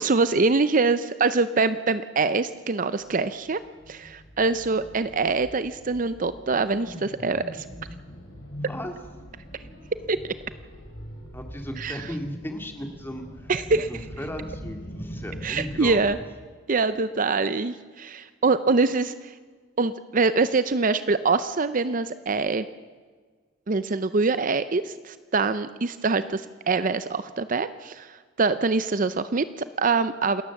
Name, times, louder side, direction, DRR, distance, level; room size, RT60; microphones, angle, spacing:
voice 1, 0.0-3.6 3.9-7.7 10.1-10.3 11.8-12.1 13.5-14.0 15.4-16.2 16.7-19.4 19.8-22.6 23.7-30.4, right 4 dB, 45° right, 13 dB, 0.6 m, -24 dB
sound 1, 3.0-16.1, equal, 75° left, 6.4 m, -42 dB
voice 2, 11.3-16.2, equal, 10° left, 4 dB, 2.2 m, -36 dB
28.5 x 13.5 x 7.2 m, 1.5 s
head